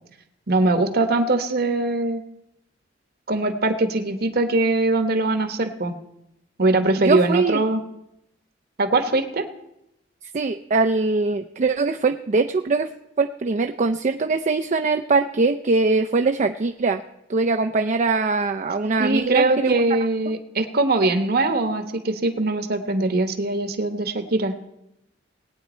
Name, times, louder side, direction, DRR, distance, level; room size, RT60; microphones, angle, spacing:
voice 1, 0.5-2.2 3.3-5.9 6.6-7.8 8.8-9.4 19.0-24.5, right 2 dB, 55° right, 8 dB, 1.2 m, -21 dB
voice 2, 7.0-7.6 10.3-12.9 13.2-17.0 17.3-19.8, right 3 dB, 40° right, 7 dB, 0.4 m, -22 dB
19.0 x 9.2 x 4.3 m, 0.84 s
head